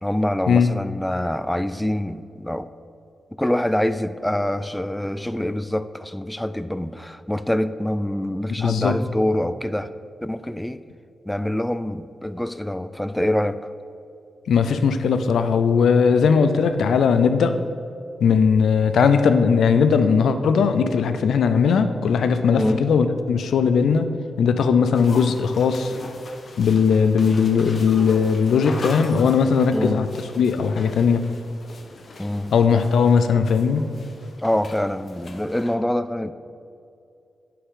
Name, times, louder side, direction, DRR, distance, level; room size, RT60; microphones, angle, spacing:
voice 1, 0.0-2.7 3.4-9.9 10.2-10.8 11.3-13.7 22.5-22.9 29.7-30.0 32.2-32.5 34.4-36.3, left 1 dB, 5° left, 13 dB, 0.3 m, -25 dB
voice 2, 8.6-9.0 14.5-17.6 18.2-24.1 24.4-25.9 26.6-30.1 30.4-31.3 32.5-33.8, left 6 dB, 85° left, 10 dB, 0.4 m, -18 dB
sound 1, 24.9-35.8, left 3 dB, 55° left, 0.7 m, -40 dB
9.8 x 5.7 x 3.7 m, 2.5 s
cardioid pair, 80°, 0 cm